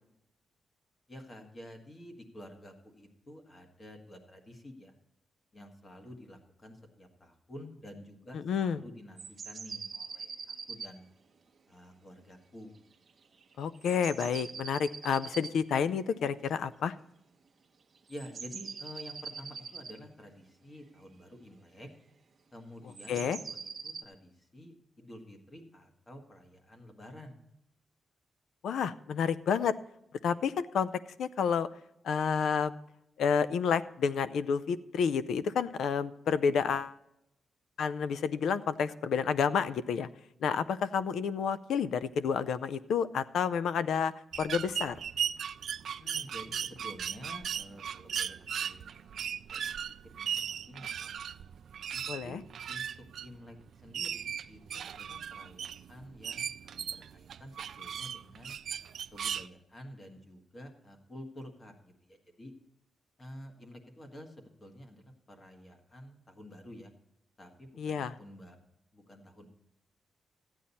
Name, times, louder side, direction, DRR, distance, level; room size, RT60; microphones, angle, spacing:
voice 1, 1.1-4.9 5.5-11.0 11.7-12.8 18.1-21.9 22.5-27.4 46.0-49.8 50.2-51.1 51.9-52.4 52.7-52.8 53.2-53.5 53.8-58.5 59.1-62.5 63.2-65.0 65.3-66.9 67.4-68.6 68.9-69.5, equal, 25° left, 3 dB, 1.6 m, -50 dB
voice 2, 8.3-8.8 13.6-17.0 23.1-23.4 28.6-29.7 30.2-30.9 31.2-31.7 32.0-32.7 33.2-37.0 37.8-40.1 40.4-44.1 44.4-45.0 52.1-52.4 67.8-68.2, left 6 dB, 80° left, 14 dB, 0.5 m, -30 dB
sound 1, 9.2-10.9 13.4-15.5 16.1-16.2 18.1-20.0 22.9-24.0, right 5 dB, 40° right, 1.0 m, -43 dB
sound 2, 44.3-59.5, right 8 dB, 65° right, 0.3 m, -37 dB
14.0 x 9.0 x 4.2 m, 0.83 s
wide cardioid pair, 175°, 0 cm